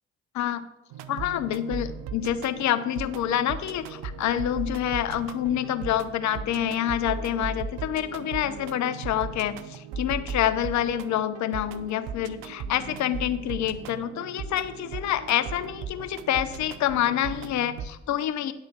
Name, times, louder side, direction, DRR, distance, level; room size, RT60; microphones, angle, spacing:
voice 1, 0.3-0.7 1.1-18.5, left 11 dB, 65° left, 12 dB, 0.7 m, -27 dB
sound 1, 0.9-17.9, right 5 dB, 80° right, 0.6 m, -37 dB
9.7 x 4.1 x 7.3 m, 0.95 s
hypercardioid pair, 45°, 31 cm